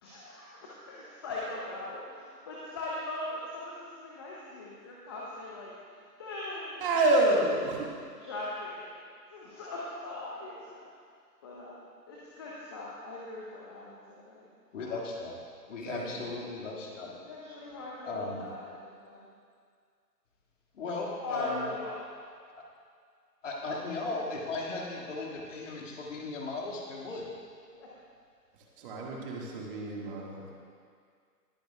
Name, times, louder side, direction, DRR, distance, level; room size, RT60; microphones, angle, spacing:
voice 1, 0.0-6.9 7.3-7.4 8.0-8.9 9.3-10.7 11.4-11.8 12.1-14.0 14.3-14.5 17.3-19.3 21.2-22.1 27.7-27.9, left 2 dB, 15° left, -5 dB, 0.7 m, -40 dB
voice 2, 6.8-7.9 15.9-16.0 28.8-30.5, right 2 dB, 35° right, -3 dB, 1.9 m, -28 dB
voice 3, 14.7-15.4 15.7-17.1 18.0-18.4 20.7-21.7 22.5-22.6 23.4-27.3, left 3 dB, 50° left, -2 dB, 2.2 m, -36 dB
20.0 x 10.0 x 2.4 m, 2.1 s
figure-of-eight pair, 140°, 49 cm